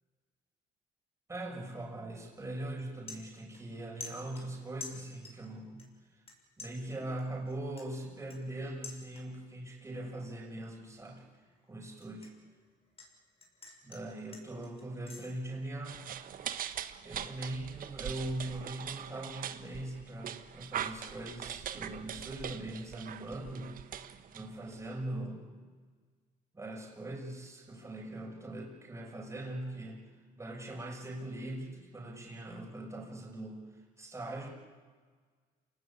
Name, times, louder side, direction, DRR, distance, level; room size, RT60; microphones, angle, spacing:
voice 1, 1.3-6.2 6.6-11.2 11.7-12.3 13.8-16.0 17.0-23.7 24.3-25.5 26.5-30.0 30.4-33.7 34.0-34.5, right 1 dB, 15° right, -1 dB, 6.3 m, -41 dB
sound 1, 3.1-3.7 4.0-5.5 5.8-6.3 6.6-9.5 9.9-10.2 10.6-13.1 13.4-15.3, left 3 dB, 35° left, 6.2 m, -49 dB
sound 2, 15.8-24.9, right 9 dB, 55° right, 1.4 m, -42 dB
28.0 x 19.0 x 8.7 m, 1.5 s
cardioid pair, 110°, 17 cm